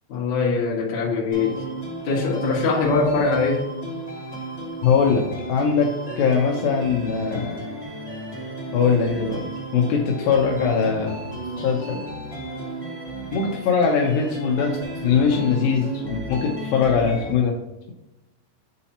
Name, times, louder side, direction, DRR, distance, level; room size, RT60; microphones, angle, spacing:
voice 1, 0.1-1.6 2.0-3.7, left 4 dB, 60° left, -3 dB, 1.9 m, -22 dB
sound 1, 1.3-17.3, right 1 dB, 25° right, 0.8 m, -34 dB
voice 2, 4.8-5.2 5.5-5.9 6.2-7.6 8.7-9.4 9.7-11.1 11.6-12.0 13.3-14.8 15.0-17.6, left 6 dB, 85° left, 0 dB, 2.0 m, -21 dB
9.2 x 4.2 x 2.9 m, 0.96 s
omnidirectional pair, 5.1 m